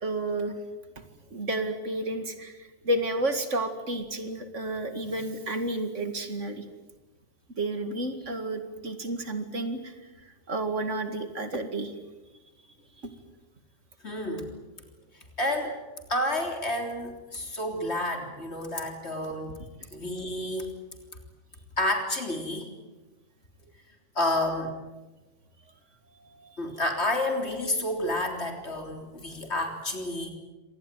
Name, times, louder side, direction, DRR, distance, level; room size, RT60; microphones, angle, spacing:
voice 1, 0.0-0.5 1.0-1.1 1.3-6.6 7.6-9.9 10.5-11.9 26.2-26.6, right 1 dB, 65° right, 8 dB, 2.5 m, -31 dB
voice 2, 14.0-14.5 15.4-15.8 16.1-19.6 19.9-20.7 21.8-22.7 24.2-24.8 26.6-30.3, left 1 dB, 55° left, 4 dB, 3.9 m, -30 dB
26.0 x 19.0 x 9.2 m, 1.2 s
omnidirectional pair, 1.4 m